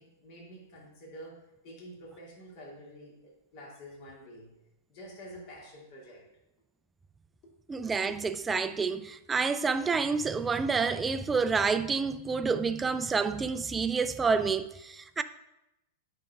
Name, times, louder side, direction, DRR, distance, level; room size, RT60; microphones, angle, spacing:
voice 1, 0.0-4.5 4.9-6.2, equal, 50° left, 2.5 m, -48 dB
voice 2, 7.7-15.2, right 5 dB, 15° right, 0.4 m, -28 dB
9.0 x 4.9 x 3.6 m
hypercardioid pair, 105°, 0 cm